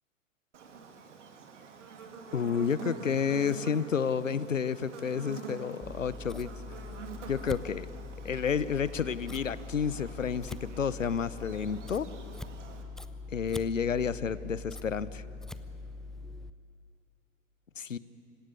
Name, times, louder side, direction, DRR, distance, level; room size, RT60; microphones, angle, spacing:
Buzz, 0.5-12.8, right 5 dB, 70° right, 2.6 m, -46 dB
voice 1, 2.3-6.5 7.3-7.9 8.2-12.1 13.3-15.2 17.8-18.0, left 6 dB, 85° left, 17 dB, 0.8 m, -30 dB
Scissors, 5.8-16.5, left 3 dB, ahead, 0.5 m, -43 dB
25.0 x 17.0 x 9.6 m, 2.5 s
figure-of-eight pair, 90°, 38 cm